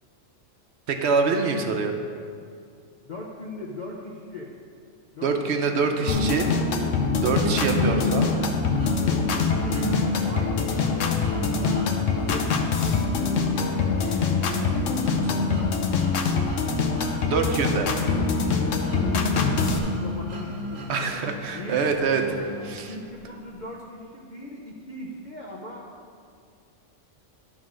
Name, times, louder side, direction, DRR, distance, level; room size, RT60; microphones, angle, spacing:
voice 1, 0.9-2.0 5.2-6.5 7.2-8.3 17.3-17.9 20.9-22.2 22.6-22.9, right 5 dB, 60° right, 4 dB, 1.0 m, -25 dB
voice 2, 3.0-4.5 5.1-6.5 7.2-8.4 9.1-9.8 10.3-11.8 12.2-13.5 18.7-19.1 19.7-21.9 22.9-25.9, left 1 dB, 45° left, -3 dB, 0.9 m, -39 dB
sound 1, 6.1-19.8, left 5 dB, 75° left, 1.1 m, -24 dB
sound 2, 7.4-23.3, right 1 dB, 35° right, 1.1 m, -34 dB
11.0 x 3.9 x 6.2 m, 2.3 s
omnidirectional pair, 1.3 m